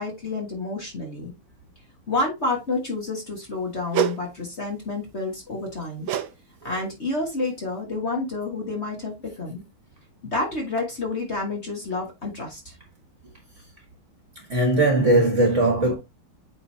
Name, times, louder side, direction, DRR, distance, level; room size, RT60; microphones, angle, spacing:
voice 1, 0.0-1.3 2.1-6.1 6.6-9.6 10.3-12.7, left 2 dB, 35° left, 1.7 m, -29 dB
sound 1, 3.9-4.2 6.1-6.3 6.6-6.9 7.5-7.6, right 10 dB, 75° right, 1.5 m, -25 dB
voice 2, 14.5-15.9, right 2 dB, 40° right, 1.6 m, -19 dB
8.5 x 4.1 x 2.7 m
omnidirectional pair, 2.3 m